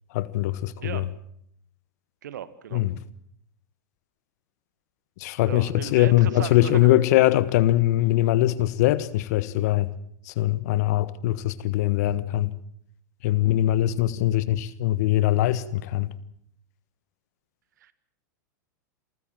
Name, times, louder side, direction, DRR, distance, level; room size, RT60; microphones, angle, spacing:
voice 1, 0.1-1.1 2.7-3.0 5.2-9.9 10.2-12.5 13.2-16.1, left 14 dB, 60° left, 1.4 m, -22 dB
voice 2, 2.2-2.8 5.5-6.9 17.8-17.9, right 10 dB, 75° right, 1.7 m, -36 dB
28.0 x 14.5 x 7.7 m
hypercardioid pair, 105°, 10 cm